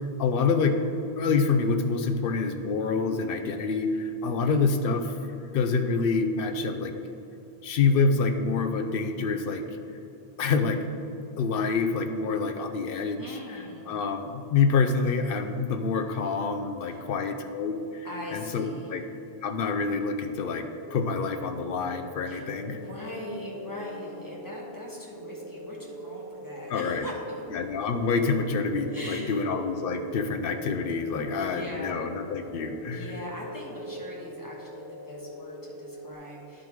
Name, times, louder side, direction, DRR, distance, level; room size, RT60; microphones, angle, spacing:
voice 1, 0.2-0.8 1.2-5.1 5.5-7.0 7.6-9.6 10.4-10.8 11.4-13.2 13.9-18.6 18.9-19.0 19.4-22.8 26.7-27.1 27.5-33.1, left 4 dB, 65° left, 6 dB, 0.8 m, -27 dB
voice 2, 4.3-4.7 13.2-13.9 16.9-17.1 18.0-18.9 22.3-27.4 28.9-29.4 31.3-32.0 32.9-36.7, left 1 dB, 20° left, -4 dB, 1.3 m, -41 dB
sound 1, 20.7-36.1, equal, 45° left, 1.8 m, -42 dB
11.5 x 3.8 x 4.6 m, 2.8 s
omnidirectional pair, 1.0 m